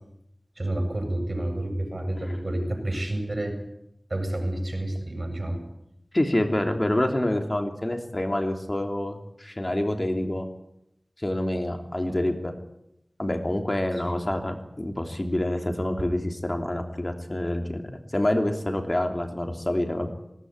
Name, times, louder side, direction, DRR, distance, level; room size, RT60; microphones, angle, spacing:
voice 1, 0.6-3.6 4.1-5.6, right 1 dB, 55° right, 4 dB, 7.7 m, -29 dB
voice 2, 6.1-10.5 11.2-12.5 13.2-20.1, left 1 dB, 35° left, 5 dB, 3.2 m, -27 dB
20.0 x 18.5 x 9.8 m, 0.79 s
wide cardioid pair, 45°, 0 cm